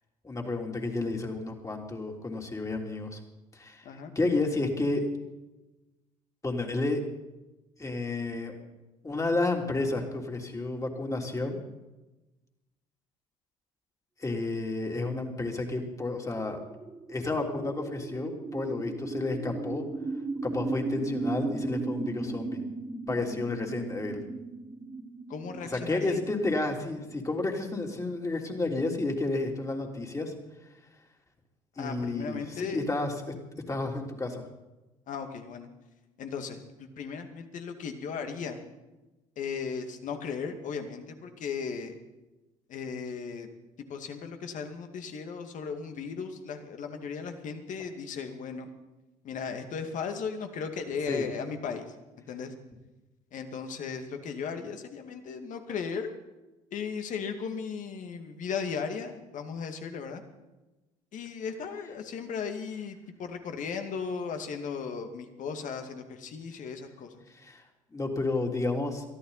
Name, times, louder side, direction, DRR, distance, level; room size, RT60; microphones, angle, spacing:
voice 1, 0.2-3.2 3.5-3.9 4.1-5.1 6.4-7.0 7.8-8.5 9.0-11.6 14.2-16.6 17.1-19.8 20.4-22.6 23.1-24.2 25.7-30.3 31.8-33.3 33.7-34.4 51.1-51.3 67.3-67.6 67.9-69.0, left 2 dB, 20° left, 1 dB, 3.4 m, -31 dB
sound 1, 15.9-27.6, right 3 dB, 20° right, 1.8 m, -37 dB
voice 2, 25.3-26.2 31.8-32.9 35.1-35.7 36.2-38.6 39.4-41.9 42.7-43.5 43.9-48.7 49.2-51.9 52.3-52.5 53.3-56.1 56.7-60.2 61.1-67.2, left 6 dB, 55° left, 6 dB, 2.3 m, -36 dB
23.0 x 14.0 x 4.2 m, 1.1 s
hypercardioid pair, 70°, 15 cm